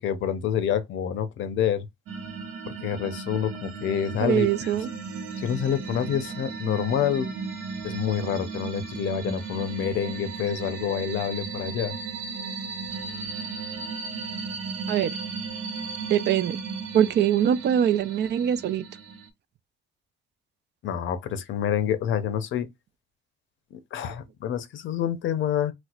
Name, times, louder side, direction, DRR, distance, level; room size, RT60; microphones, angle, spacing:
voice 1, 0.0-1.9 2.7-4.7 5.4-7.3 7.8-12.0 20.8-22.7 23.9-25.7, left 9 dB, 75° left, 0.6 m, -27 dB
sound 1, 2.1-19.3, right 5 dB, 90° right, 0.8 m, -35 dB
voice 2, 4.2-4.9 14.9-15.2 16.1-16.6 16.9-18.8, right 10 dB, 60° right, 0.4 m, -23 dB
4.3 x 2.1 x 2.4 m
cardioid pair, 90°, 20 cm